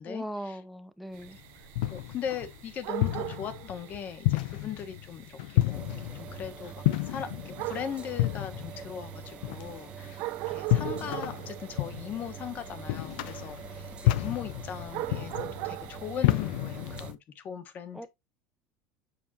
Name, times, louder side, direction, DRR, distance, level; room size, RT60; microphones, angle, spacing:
voice 1, 0.1-1.4 17.9-18.1, equal, ahead, 0.8 m, -39 dB
sound 1, 1.1-17.1, right 20 dB, 65° right, 0.5 m, -42 dB
sound 2, 1.2-17.1, left 16 dB, 90° left, 0.6 m, -31 dB
voice 2, 1.9-18.1, left 8 dB, 40° left, 1.3 m, -39 dB
sound 3, 5.7-17.1, right 7 dB, 25° right, 1.0 m, -45 dB
7.1 x 5.3 x 2.9 m
cardioid pair, 135°, 4 cm